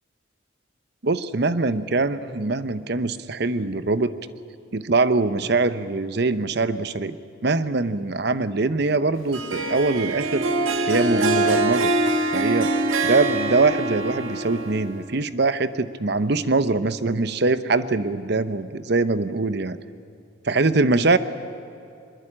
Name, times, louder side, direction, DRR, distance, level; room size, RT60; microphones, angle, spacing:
voice 1, 1.0-4.1 4.7-7.2 7.4-10.5 10.8-11.9 12.3-12.7 13.0-19.8 20.4-21.2, right 3 dB, 55° right, 13 dB, 0.8 m, -23 dB
Harp, 9.3-15.1, right 2 dB, 85° right, 1.7 m, -24 dB
22.5 x 21.5 x 8.7 m, 2.6 s
head